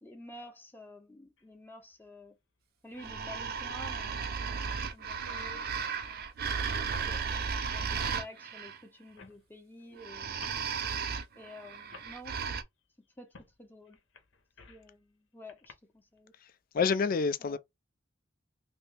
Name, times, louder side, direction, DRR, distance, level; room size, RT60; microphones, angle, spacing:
voice 1, 0.0-2.4 2.8-6.3 6.8-10.4 11.3-12.6 13.2-14.0 14.7-16.3 17.4-17.6, left 1 dB, 10° left, 0.7 m, -51 dB
sound 1, 1.4-1.5 3.2-3.3 3.7-3.8 4.3-4.5 4.8-4.9 5.1-7.3 8.0-8.2 9.2-9.4 10.4-10.6 11.5-11.6 11.9-12.1 13.3-13.5 13.9-14.9 15.5-15.7, left 3 dB, 70° left, 0.8 m, -51 dB
sound 2, 3.0-8.8 10.0-12.6, right 6 dB, 50° right, 0.5 m, -35 dB
voice 2, 16.7-17.6, left 5 dB, 50° left, 0.4 m, -27 dB
2.9 x 2.7 x 3.3 m
head